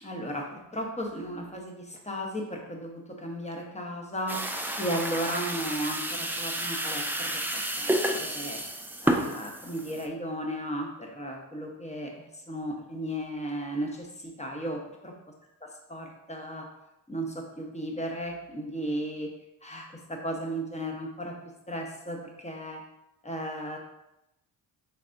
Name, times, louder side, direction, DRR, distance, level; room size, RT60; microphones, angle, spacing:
voice 1, 0.0-4.4 4.8-8.6 9.0-15.1 15.9-16.7 17.1-19.3 19.6-21.4 21.7-22.8 23.2-23.8, equal, 15° left, 1 dB, 0.9 m, -35 dB
sound 1, 4.3-10.1, right 1 dB, 5° right, 0.4 m, -31 dB
4.1 x 3.4 x 2.6 m, 0.89 s
supercardioid pair, 40°, 49 cm